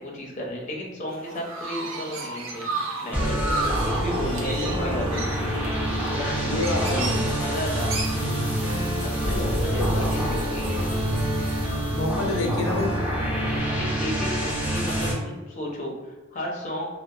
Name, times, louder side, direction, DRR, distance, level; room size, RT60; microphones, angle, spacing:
voice 1, 0.0-2.6 3.0-3.4 3.8-5.2 6.1-7.9 9.0-10.7 13.5-16.9, equal, 40° left, -2 dB, 0.5 m, -34 dB
Chirp tweet, 1.1-11.7, right 3 dB, 80° right, 0.4 m, -35 dB
sound 1, 3.1-15.1, equal, 10° right, 0.6 m, -26 dB
voice 2, 4.5-4.9 6.4-7.2 9.7-10.6 11.9-13.0, left 2 dB, 90° left, 0 dB, 0.5 m, -29 dB
2.8 x 2.0 x 2.3 m, 1.2 s
head